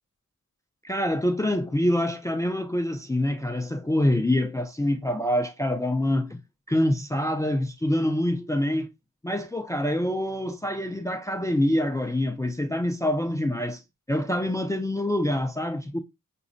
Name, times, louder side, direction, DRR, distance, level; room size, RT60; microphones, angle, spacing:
voice 1, 0.8-6.4 6.7-8.9 9.2-13.8 14.1-16.0, left 1 dB, 10° left, 0.3 m, -25 dB
6.0 x 2.0 x 2.5 m
wide cardioid pair, 90°, 33 cm